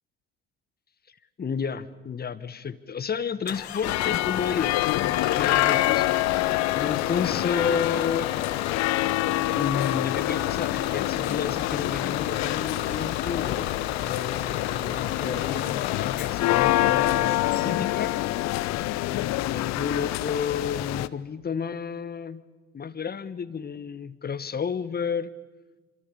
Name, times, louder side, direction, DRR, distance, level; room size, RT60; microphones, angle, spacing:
voice 1, 1.4-6.2 6.7-8.3 9.6-13.7 14.0-18.1 19.1-22.4 22.7-25.3, left 6 dB, 30° left, 14 dB, 1.5 m, -31 dB
Bus / Engine starting, 3.5-19.7, left 11 dB, 75° left, 1.8 m, -34 dB
sound 1, 3.8-21.1, left 17 dB, 55° left, 0.9 m, -26 dB
27.0 x 26.5 x 7.2 m, 1.2 s
figure-of-eight pair, 55°, 32 cm